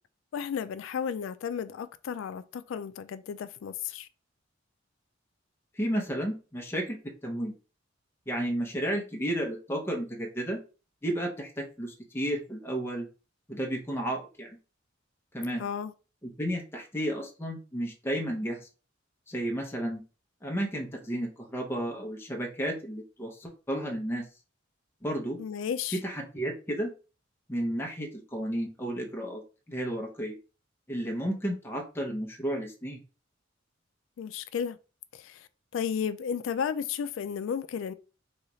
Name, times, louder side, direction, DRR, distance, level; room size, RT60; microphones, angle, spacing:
voice 1, 0.3-4.1 15.6-15.9 25.4-26.0 34.2-34.8 35.1-35.5 35.7-37.9, left 7 dB, 75° left, 0.3 m, -33 dB
voice 2, 5.8-7.5 8.3-10.6 11.0-13.1 13.5-14.5 15.3-15.6 16.2-18.6 19.3-20.0 20.4-24.3 25.0-25.4 26.0-26.9 27.5-29.4 29.7-30.3 30.9-33.0, right 1 dB, 15° left, 0.7 m, -32 dB
3.9 x 2.4 x 3.1 m
head